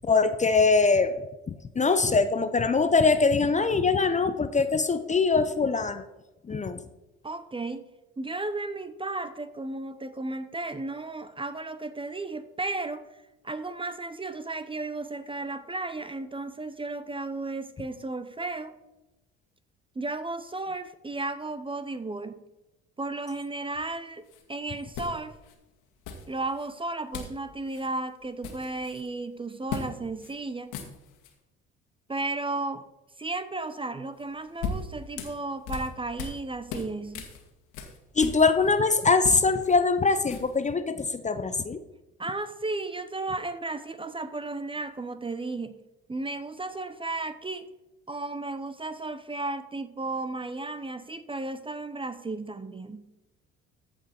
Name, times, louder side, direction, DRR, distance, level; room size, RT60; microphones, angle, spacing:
voice 1, 0.1-1.1 1.5-6.0 6.5-6.8 38.2-41.8, left 4 dB, 20° left, 11 dB, 0.7 m, -23 dB
voice 2, 7.2-7.9 8.2-13.1 13.4-18.7 20.0-22.4 23.0-24.2 24.5-25.4 26.3-30.8 32.1-32.8 33.2-37.3 42.2-45.8 46.1-47.7 48.1-53.1, right 2 dB, 15° right, 12 dB, 0.8 m, -34 dB
sound 1, 24.3-24.4 24.9-25.5 26.0-26.7 27.1-27.4 27.7-27.9 28.2-29.1 29.7-29.9 30.2-30.3 30.6-31.3 34.2-36.4 36.7-38.7 39.0-40.7, left 5 dB, 65° left, 1.8 m, -38 dB
14.5 x 5.3 x 4.3 m, 0.99 s
hypercardioid pair, 60°, 32 cm